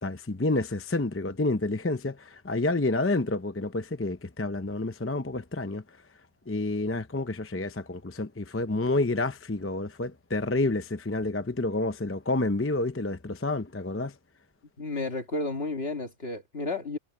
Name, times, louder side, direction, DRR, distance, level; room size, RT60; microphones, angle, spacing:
voice 1, 0.0-5.8 6.5-14.1, left 2 dB, 15° left, 0.6 m, -29 dB
voice 2, 14.8-17.0, left 3 dB, 55° left, 2.4 m, -32 dB
omnidirectional pair, 1.2 m